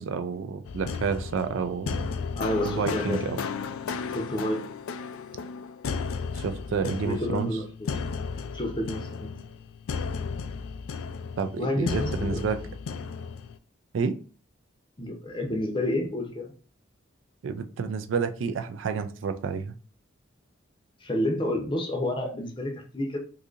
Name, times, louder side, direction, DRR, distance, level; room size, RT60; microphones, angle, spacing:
voice 1, 0.0-2.1 2.7-3.4 6.3-7.5 11.4-12.6 13.9-14.2 17.4-19.7, right 5 dB, 70° right, 9 dB, 0.3 m, -29 dB
sound 1, 0.6-13.6, left 5 dB, 85° left, 0.3 m, -34 dB
voice 2, 2.4-3.2 4.1-4.7 6.8-7.9 8.5-9.4 11.6-12.5 15.0-16.5 21.0-23.2, left 1 dB, 25° left, 3 dB, 0.6 m, -30 dB
3.8 x 2.7 x 2.5 m, 0.39 s
head